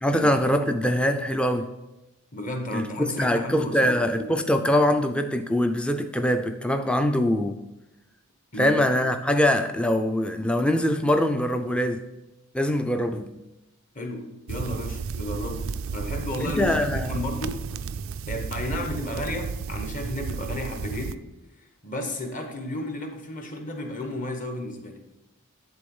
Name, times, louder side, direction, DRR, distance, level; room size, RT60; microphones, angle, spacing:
voice 1, 0.0-1.7 2.7-7.6 8.6-12.1 12.5-13.3 16.4-17.1, left 1 dB, 5° left, 7 dB, 0.4 m, -23 dB
voice 2, 2.3-4.3 8.5-8.8 13.9-17.7 18.3-21.2 21.8-25.0, left 1 dB, 35° left, 4 dB, 1.1 m, -33 dB
sound 1, 14.5-21.1, right 5 dB, 65° right, 0.3 m, -32 dB
11.0 x 3.9 x 5.4 m, 0.96 s
head